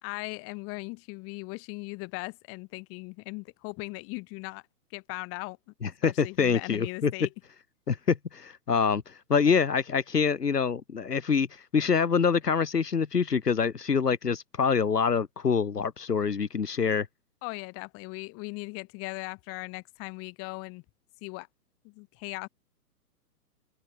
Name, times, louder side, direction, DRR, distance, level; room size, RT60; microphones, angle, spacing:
voice 1, 0.0-4.6 4.9-5.6 6.0-7.3 17.4-20.8 21.2-21.5 21.8-22.5, left 27 dB, 30° left, 5.4 m, -38 dB
voice 2, 5.8-7.1 7.9-17.1, left 6 dB, 85° left, 1.1 m, -26 dB
open air
figure-of-eight pair, 125°, 47 cm